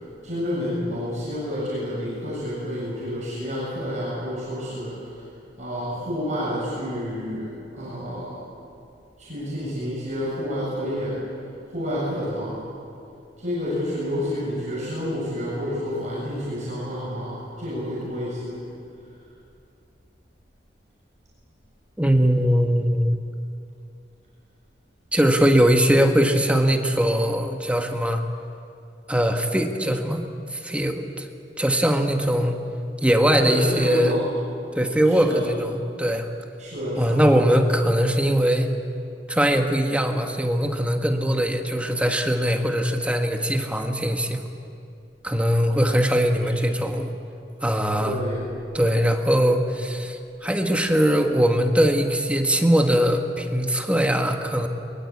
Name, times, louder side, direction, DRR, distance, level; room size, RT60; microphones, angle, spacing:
voice 1, 0.2-5.1 5.6-8.4 9.2-11.2 11.7-12.6 13.4-18.6 33.4-34.3 35.1-35.4 36.6-37.7 48.0-48.5, equal, 45° right, -7 dB, 7.0 m, -29 dB
voice 2, 22.0-23.2 25.1-28.2 29.1-30.2 30.5-31.3 31.6-32.6 33.0-34.1 34.7-36.3 37.0-38.7 39.3-44.4 45.2-47.1 47.6-48.2 48.7-54.7, equal, 5° right, 4 dB, 1.5 m, -21 dB
22.5 x 22.5 x 8.6 m, 2.5 s
head